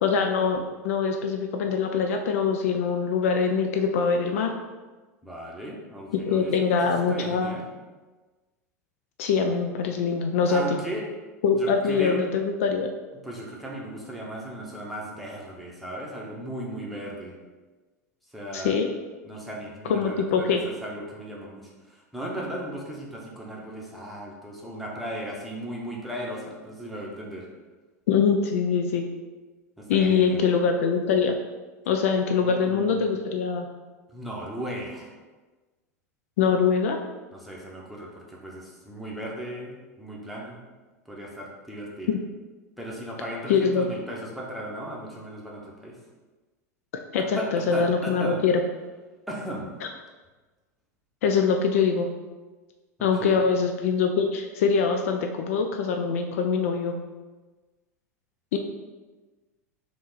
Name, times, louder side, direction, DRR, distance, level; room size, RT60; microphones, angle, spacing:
voice 1, 0.0-4.5 6.1-7.6 9.2-10.6 11.4-12.9 18.5-18.9 19.9-20.6 28.1-29.1 29.9-31.4 31.9-33.7 36.4-37.0 43.5-43.8 47.1-48.6 49.8-49.9 51.2-52.1 53.0-57.0 58.5-58.6, left 5 dB, 55° left, 4 dB, 0.3 m, -23 dB
voice 2, 5.2-7.6 10.5-11.0 11.5-12.2 13.2-17.4 18.3-18.7 19.2-27.5 29.8-30.4 32.3-33.1 34.1-35.1 37.3-40.6 41.0-42.1 42.8-46.0 47.3-48.4 49.3-49.7 53.0-53.5, equal, ahead, -4 dB, 0.9 m, -36 dB
3.7 x 2.9 x 4.0 m, 1.3 s
figure-of-eight pair, 85°, 9 cm